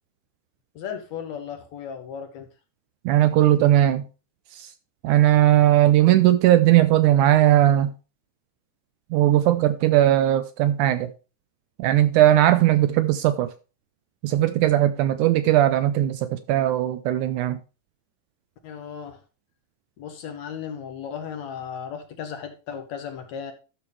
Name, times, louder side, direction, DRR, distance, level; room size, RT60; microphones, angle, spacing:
voice 1, 0.8-2.5 18.6-19.2 20.0-23.5, left 7 dB, 70° left, 1.8 m, -35 dB
voice 2, 3.1-4.0 4.6-4.7 5.0-7.9 9.1-11.1 11.8-13.5 14.2-17.6, right 13 dB, 85° right, 1.8 m, -18 dB
12.5 x 6.9 x 3.3 m
omnidirectional pair, 4.1 m